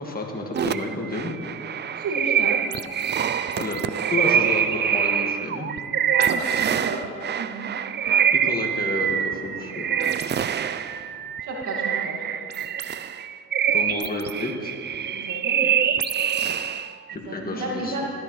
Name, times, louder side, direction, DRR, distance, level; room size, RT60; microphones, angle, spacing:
voice 1, 0.0-1.4 3.5-3.8 4.1-5.7 8.3-10.1 13.7-14.7 17.1-18.1, left 2 dB, 30° left, 0 dB, 1.9 m, -30 dB
sound 1, 0.5-17.2, right 8 dB, 35° right, 0.4 m, -25 dB
voice 2, 2.0-2.6 6.3-7.0 7.3-7.7 11.4-12.3 15.1-15.8 17.1-18.0, right 2 dB, 75° right, -2 dB, 2.1 m, -32 dB
14.0 x 13.5 x 3.2 m, 2.4 s
cardioid pair, 90°, 30 cm